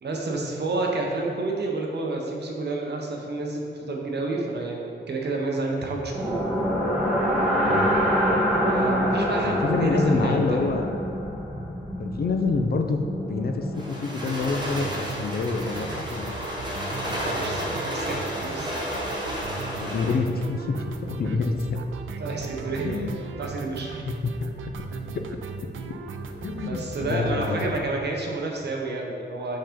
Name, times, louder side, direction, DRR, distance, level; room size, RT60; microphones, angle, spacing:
voice 1, 0.0-6.4 8.5-10.8 17.1-18.9 22.2-23.1 23.4-24.0 26.6-29.6, right 3 dB, 60° right, 0 dB, 0.9 m, -30 dB
sound 1, 6.1-14.1, equal, ahead, 1.1 m, -25 dB
voice 2, 9.5-11.0 12.0-16.4 19.8-20.8 21.0-21.8 22.8-23.2 24.1-24.8 25.1-25.2 26.4-27.8, left 4 dB, 50° left, 5 dB, 0.5 m, -27 dB
sound 2, 13.7-20.2, equal, 20° right, 1.0 m, -32 dB
sound 3, 14.2-27.8, right 4 dB, 85° right, 0.4 m, -37 dB
5.4 x 3.7 x 5.1 m, 2.5 s
wide cardioid pair, 135°, 20 cm